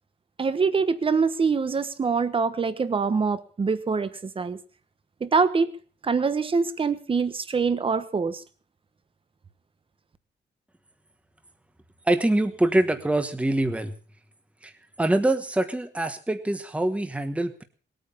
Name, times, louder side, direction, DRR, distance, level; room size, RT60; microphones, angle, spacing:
voice 1, 0.4-4.6 5.2-5.7 6.0-8.4, right 5 dB, 30° right, 13 dB, 1.2 m, -24 dB
voice 2, 12.1-13.9 14.6-14.7 15.0-17.6, right 1 dB, 5° right, 8 dB, 1.3 m, -24 dB
20.5 x 9.2 x 7.1 m, 0.41 s
wide cardioid pair, 160°, 18 cm